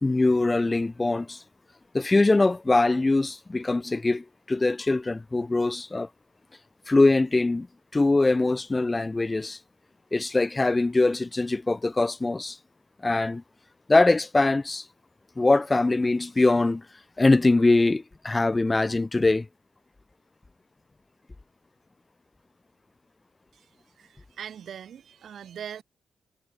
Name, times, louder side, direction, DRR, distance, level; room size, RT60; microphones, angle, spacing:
voice 1, 0.0-1.4 1.9-6.1 6.9-7.7 7.9-9.6 10.1-12.6 13.0-13.4 13.9-14.9 15.4-16.9 17.2-19.5, left 2 dB, 25° left, 1.4 m, -22 dB
voice 2, 24.0-25.8, right 8 dB, 70° right, 4.1 m, -41 dB
supercardioid pair, 55°, 0 cm